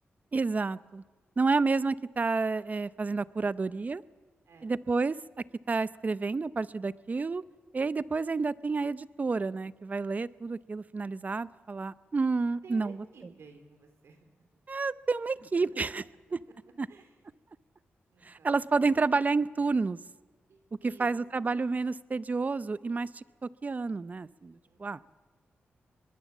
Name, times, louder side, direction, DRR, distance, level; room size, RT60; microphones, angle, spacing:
voice 1, 0.3-1.0 1.4-4.0 4.6-5.2 5.7-7.4 7.7-13.0 14.7-16.0 16.8-16.9 18.2-20.0 20.8-23.2 23.6-25.0, right 4 dB, 35° right, 16 dB, 0.7 m, -30 dB
voice 2, 12.6-14.3 15.4-15.8 16.9-17.4 18.1-18.5 20.5-21.1 21.3-21.4 24.6-25.0, right 5 dB, 75° right, 6 dB, 3.6 m, -54 dB
24.0 x 21.0 x 7.2 m, 1.4 s
cardioid pair, 70°, 4 cm